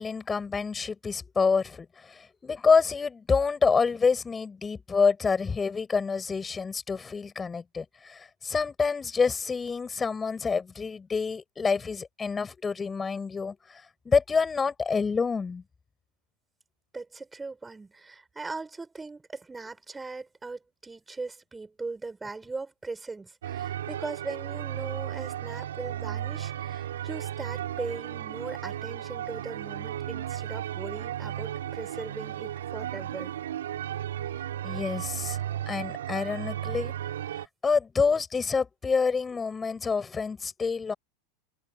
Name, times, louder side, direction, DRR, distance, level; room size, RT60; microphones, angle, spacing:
voice 1, 0.0-15.6 34.6-35.4 35.7-36.9 37.6-40.9, left 5 dB, 20° left, 6.9 m, -27 dB
voice 2, 16.9-33.3, right 3 dB, 15° right, 7.5 m, -39 dB
sound 1, 23.4-37.5, right 11 dB, 80° right, 4.4 m, -35 dB
hypercardioid pair, 100°, 0 cm